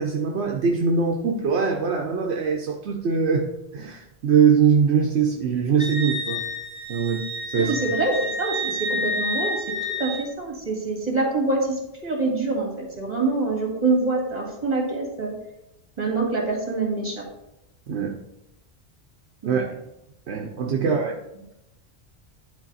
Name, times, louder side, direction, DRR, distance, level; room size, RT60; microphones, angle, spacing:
voice 1, 0.0-6.4 6.9-7.7 17.9-18.2 19.5-19.8 20.3-21.1, right 6 dB, 75° right, 1 dB, 1.0 m, -22 dB
Wind instrument woodwind instrument, 5.8-10.3, left 1 dB, 15° right, 1.4 m, -29 dB
voice 2, 7.6-9.6 10.0-15.3 16.0-17.2 19.4-19.7 20.8-20.9, right 3 dB, 40° right, 0 dB, 2.2 m, -25 dB
10.5 x 4.0 x 4.1 m, 0.87 s
omnidirectional pair, 1.1 m